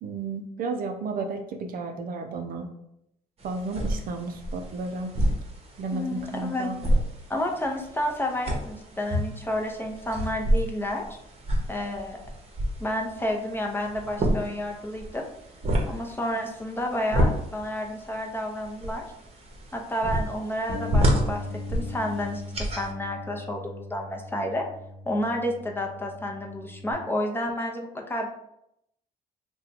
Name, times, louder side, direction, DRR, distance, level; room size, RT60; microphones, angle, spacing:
voice 1, 0.0-2.7 3.4-5.1 5.8-6.8, right 3 dB, 60° right, 5 dB, 0.5 m, -33 dB
sound 1, 3.4-22.9, equal, 40° right, 0.9 m, -30 dB
voice 2, 5.9-6.7 7.3-11.1 11.7-12.2 12.8-15.3 15.8-19.1 19.7-24.7 25.1-28.3, left 1 dB, 15° left, 1 dB, 0.6 m, -30 dB
Bass guitar, 20.7-26.9, left 3 dB, 50° left, 0.9 m, -39 dB
2.7 x 2.2 x 4.0 m, 0.79 s
cardioid pair, 85°, 17 cm